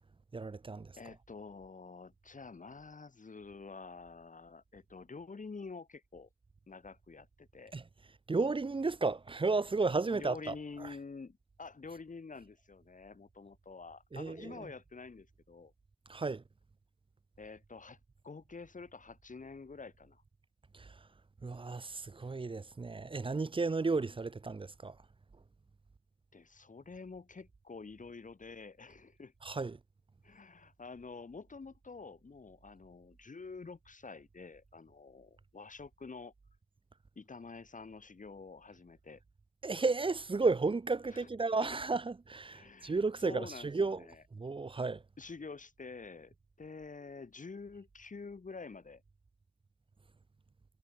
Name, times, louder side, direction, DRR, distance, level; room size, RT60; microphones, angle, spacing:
voice 1, 0.3-0.9 7.7-7.8 8.3-10.9 14.1-14.7 16.1-16.4 20.7-21.0 21.4-25.0 29.4-29.8 39.6-44.0 44.3-45.0, right 3 dB, 40° right, 0.6 m, -33 dB
voice 2, 1.0-6.3 6.7-7.7 10.1-15.7 17.4-18.0 18.2-20.2 26.3-29.3 30.2-36.3 37.2-39.2 41.1-41.3 42.5-44.2 45.2-49.0, left 4 dB, 80° left, 7.5 m, -48 dB
wide cardioid pair, 65°, 13 cm